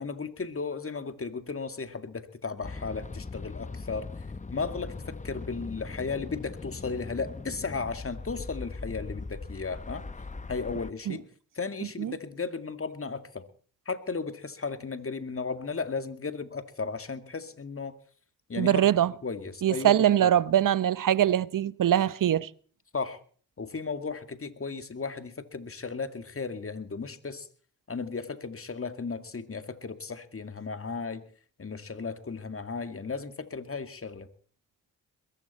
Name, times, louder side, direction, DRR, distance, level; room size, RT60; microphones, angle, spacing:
voice 1, 0.0-4.1 4.5-10.0 10.5-11.2 11.6-13.4 13.9-17.9 18.5-18.8 19.2-20.3 22.9-23.2 23.6-27.5 27.9-31.3 31.6-34.3, left 4 dB, 35° left, 2.2 m, -35 dB
sound 1, 2.6-10.9, left 3 dB, 20° left, 0.9 m, -40 dB
voice 2, 18.6-19.1 19.6-22.5, right 11 dB, 55° right, 0.9 m, -23 dB
21.5 x 15.5 x 4.3 m
supercardioid pair, 45°, 38 cm